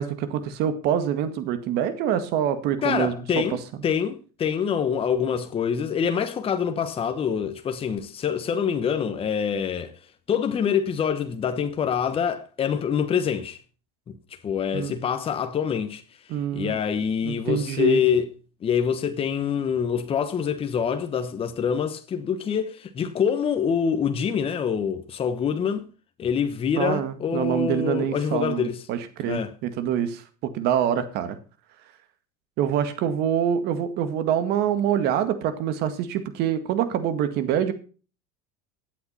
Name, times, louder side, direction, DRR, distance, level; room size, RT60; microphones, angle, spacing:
voice 1, 0.0-3.1 14.7-14.9 16.3-16.8 17.2-18.0 26.8-31.4 32.6-37.7, right 9 dB, 55° right, 1.9 m, -25 dB
voice 2, 2.8-9.9 10.3-13.6 14.1-14.2 14.4-16.0 16.5-18.3 18.6-25.9 26.2-28.8 29.3-29.5, left 7 dB, 30° left, 1.2 m, -25 dB
14.5 x 8.5 x 4.3 m
supercardioid pair, 110°, 20 cm